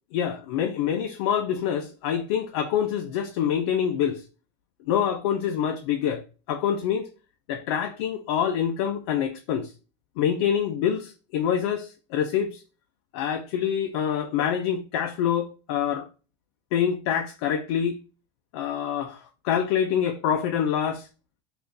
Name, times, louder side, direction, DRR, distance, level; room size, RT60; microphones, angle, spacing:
voice 1, 0.1-4.2 4.9-6.2 6.5-7.1 7.5-9.7 10.2-12.6 13.1-16.1 16.7-18.0 18.5-21.1, left 8 dB, 55° left, 0.4 m, -26 dB
3.5 x 2.4 x 2.6 m
supercardioid pair, 180°, 16 cm